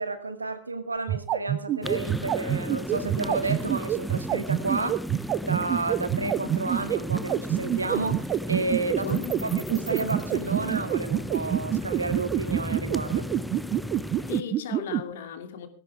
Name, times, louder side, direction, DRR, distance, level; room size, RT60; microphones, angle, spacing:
voice 1, 0.0-5.0 5.4-13.3, right 3 dB, 80° right, 2.2 m, -31 dB
sound 1, 1.0-15.0, right 13 dB, 35° right, 0.9 m, -26 dB
sound 2, 1.8-14.4, left 1 dB, 5° left, 0.8 m, -35 dB
voice 2, 9.0-9.5 14.3-15.7, left 8 dB, 60° left, 2.7 m, -37 dB
19.0 x 16.5 x 3.5 m
figure-of-eight pair, 90°, 0 cm